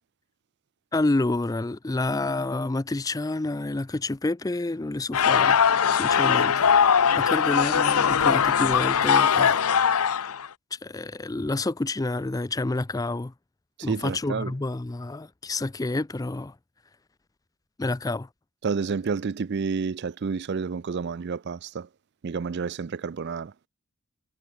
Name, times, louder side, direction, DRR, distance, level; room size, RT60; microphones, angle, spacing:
voice 1, 0.9-5.6 5.9-6.7 7.2-9.7 9.9-10.0 10.7-13.3 13.8-16.5 17.8-18.3, left 2 dB, 15° left, 0.4 m, -28 dB
sound 1, 5.1-10.5, left 7 dB, 80° left, 0.7 m, -21 dB
voice 2, 13.9-14.5 18.6-21.9 22.2-23.5, right 5 dB, 50° right, 0.4 m, -29 dB
head